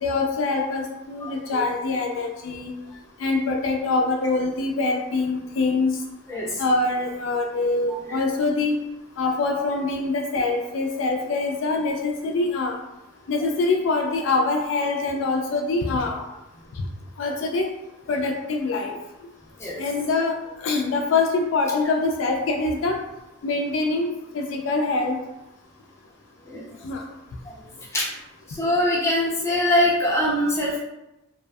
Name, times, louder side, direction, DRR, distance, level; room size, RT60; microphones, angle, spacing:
voice 1, 0.0-2.7 3.2-5.9 6.6-8.8 9.2-12.8 13.3-16.2 17.2-17.7 18.1-19.0 19.8-20.4 20.6-23.0 23.4-24.1 24.3-25.2 26.8-27.0, left 3 dB, 65° left, 2 dB, 0.3 m, -24 dB
voice 2, 1.2-1.6 6.3-6.6 7.6-8.2 19.6-19.8 26.4-26.7 27.5-27.6 27.9-28.1 28.5-30.8, left 1 dB, 15° left, -5 dB, 0.5 m, -24 dB
2.5 x 2.3 x 2.3 m, 0.93 s
head